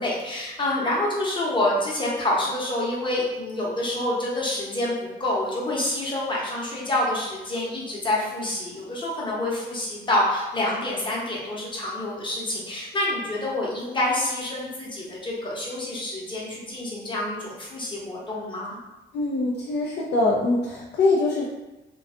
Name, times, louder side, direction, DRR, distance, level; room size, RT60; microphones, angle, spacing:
voice 1, 0.0-18.8, left 1 dB, 25° left, -5 dB, 0.8 m, -27 dB
voice 2, 19.1-21.5, left 2 dB, 60° left, -3 dB, 0.4 m, -23 dB
2.5 x 2.3 x 2.4 m, 1.1 s
cardioid pair, 90°, 20 cm